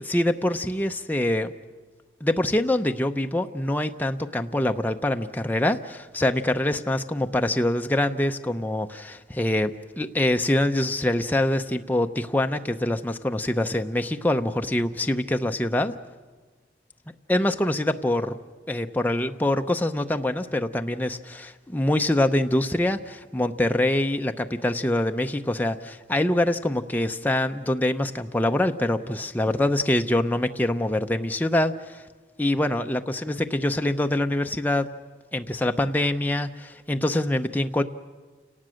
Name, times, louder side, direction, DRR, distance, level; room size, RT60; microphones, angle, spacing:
voice 1, 0.0-1.5 2.2-15.9 17.3-18.4 18.7-32.0 32.4-34.9 35.3-37.8, left 1 dB, 10° left, 6 dB, 0.6 m, -24 dB
29.5 x 18.5 x 6.4 m, 1.4 s
head